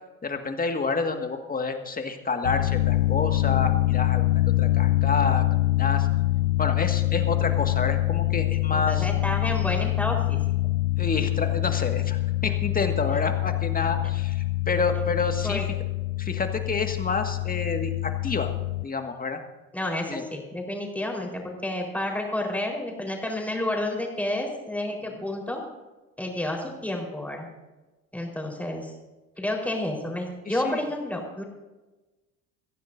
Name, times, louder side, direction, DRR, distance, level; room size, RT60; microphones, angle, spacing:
voice 1, 0.2-4.3 4.6-5.4 5.8-6.1 6.6-9.1 11.0-15.6 16.2-18.5 18.8-19.4 20.1-20.2 30.5-30.8, left 4 dB, 20° left, 5 dB, 1.9 m, -29 dB
sound 1, 2.4-18.8, left 17 dB, 75° left, 0.5 m, -25 dB
voice 2, 8.7-10.4 15.4-15.7 19.7-25.6 26.2-27.5 28.1-28.9 29.4-31.4, left 1 dB, 5° left, 0 dB, 4.4 m, -30 dB
23.0 x 15.5 x 2.7 m, 1.1 s
figure-of-eight pair, 65°, 43 cm